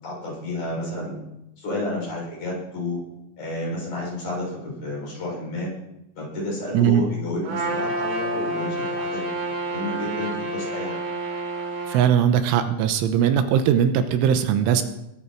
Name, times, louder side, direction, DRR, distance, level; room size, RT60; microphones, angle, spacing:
voice 1, 0.0-1.2 1.6-3.0 3.4-5.7 6.2-11.0, left 1 dB, 40° left, -5 dB, 8.4 m, -31 dB
Trumpet, 7.4-12.0, right 2 dB, 55° right, 5.3 m, -29 dB
voice 2, 11.9-14.8, right 9 dB, 85° right, 8 dB, 3.3 m, -20 dB
21.5 x 11.5 x 4.6 m, 0.90 s
omnidirectional pair, 5.8 m